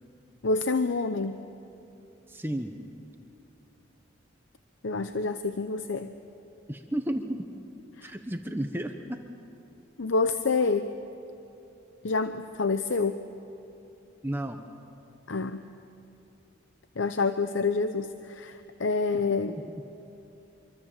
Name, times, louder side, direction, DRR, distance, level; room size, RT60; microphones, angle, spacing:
voice 1, 0.4-1.4 4.8-6.1 8.0-8.1 10.0-10.9 12.0-13.2 15.3-15.7 17.0-19.6, left 4 dB, 75° left, 9 dB, 0.7 m, -27 dB
voice 2, 2.3-2.7 6.7-7.5 8.0-9.2 14.2-14.6, right 1 dB, 10° right, 5 dB, 1.0 m, -32 dB
26.0 x 24.0 x 7.4 m, 2.9 s
head